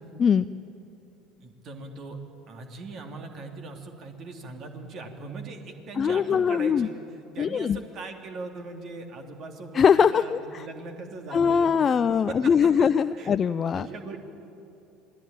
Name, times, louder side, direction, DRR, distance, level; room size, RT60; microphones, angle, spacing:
voice 1, 1.4-2.2 2.5-6.9 7.3-11.7 12.3-12.7 13.1-13.4 13.7-14.2, right 3 dB, 45° right, 4 dB, 3.2 m, -40 dB
voice 2, 6.0-6.9 7.4-7.8 9.7-10.7 11.3-13.9, left 7 dB, 35° left, 12 dB, 0.5 m, -22 dB
27.0 x 19.5 x 9.1 m, 2.8 s
figure-of-eight pair, 65°, 0 cm